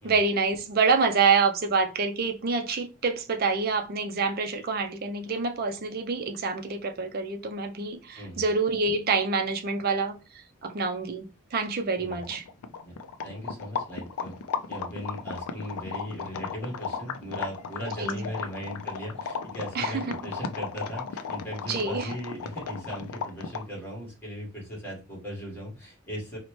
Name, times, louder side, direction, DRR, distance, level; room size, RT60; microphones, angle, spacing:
voice 1, 0.0-10.2 10.6-12.4 18.0-18.2 19.7-20.2 21.6-22.1, right 4 dB, 45° right, 0.4 m, -27 dB
sound 1, 12.0-23.8, left 6 dB, 85° left, 0.4 m, -35 dB
voice 2, 13.2-14.3 14.7-26.4, equal, 10° left, 1.3 m, -38 dB
4.1 x 2.1 x 3.0 m
head